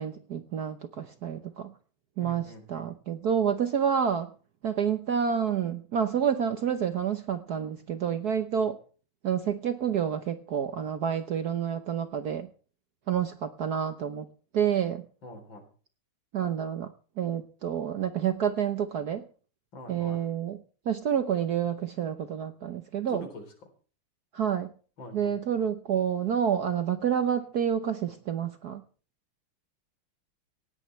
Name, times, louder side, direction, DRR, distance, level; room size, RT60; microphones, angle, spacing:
voice 1, 0.0-1.7 2.2-4.3 4.6-8.8 9.2-12.5 13.1-14.3 14.5-15.0 16.3-16.9 17.2-19.2 19.9-20.6 20.9-23.3 24.3-24.7 25.1-28.8, right 8 dB, 55° right, 10 dB, 1.2 m, -28 dB
voice 2, 2.2-2.9 15.2-15.7 19.7-20.2 23.1-23.5 25.0-25.3, left 2 dB, 60° left, 6 dB, 4.4 m, -44 dB
18.0 x 17.0 x 3.2 m, 0.40 s
omnidirectional pair, 2.4 m